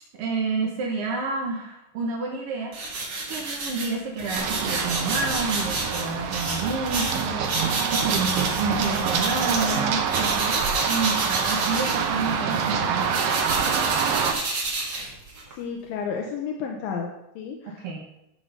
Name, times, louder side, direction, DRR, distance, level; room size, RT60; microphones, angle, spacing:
voice 1, 0.2-2.7 3.3-13.3 17.6-18.0, right 4 dB, 60° right, -1 dB, 1.5 m, -29 dB
sound 1, 2.7-9.8 10.1-15.5, right 2 dB, 45° right, 2.3 m, -30 dB
Run, 4.4-14.3, right 6 dB, 80° right, 2.5 m, -26 dB
voice 2, 15.6-18.0, left 6 dB, 85° left, 1 dB, 2.6 m, -32 dB
11.0 x 3.9 x 6.6 m, 0.85 s
omnidirectional pair, 4.0 m